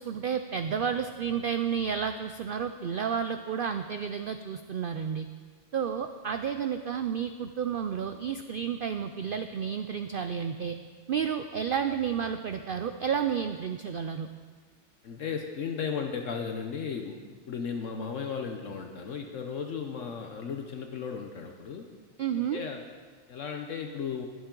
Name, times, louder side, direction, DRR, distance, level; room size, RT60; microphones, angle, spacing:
voice 1, 0.0-5.3 5.7-10.8 11.1-14.3 22.2-22.6, right 7 dB, 75° right, 8 dB, 0.5 m, -31 dB
voice 2, 15.0-17.2 17.5-21.9 22.4-22.8 23.3-24.3, left 6 dB, 65° left, 4 dB, 1.1 m, -35 dB
20.0 x 7.2 x 3.8 m, 1.5 s
omnidirectional pair, 1.5 m